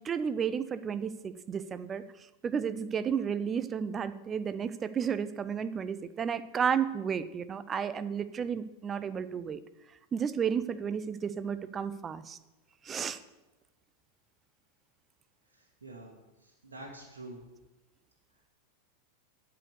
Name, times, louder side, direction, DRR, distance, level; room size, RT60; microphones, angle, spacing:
voice 1, 0.0-2.0 2.4-9.6 10.1-12.4 12.9-13.2, right 7 dB, 20° right, 14 dB, 0.5 m, -32 dB
voice 2, 15.5-16.1 16.4-17.4, right 2 dB, 70° right, -2 dB, 1.7 m, -47 dB
12.0 x 4.9 x 6.6 m, 1.1 s
figure-of-eight pair, 90°, 0 cm